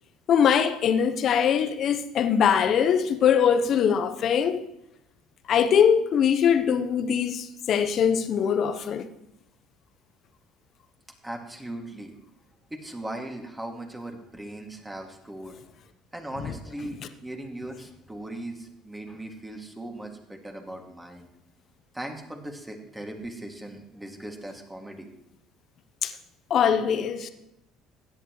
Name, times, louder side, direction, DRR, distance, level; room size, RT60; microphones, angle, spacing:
voice 1, 0.3-4.6 5.5-9.1 16.4-16.5 26.0-26.1 26.5-27.3, left 8 dB, 55° left, 1.0 m, -22 dB
voice 2, 11.2-12.1 12.7-15.6 16.1-21.3 21.9-25.1, right 1 dB, 10° right, 2.5 m, -38 dB
16.5 x 10.0 x 3.2 m
hypercardioid pair, 65°, 0 cm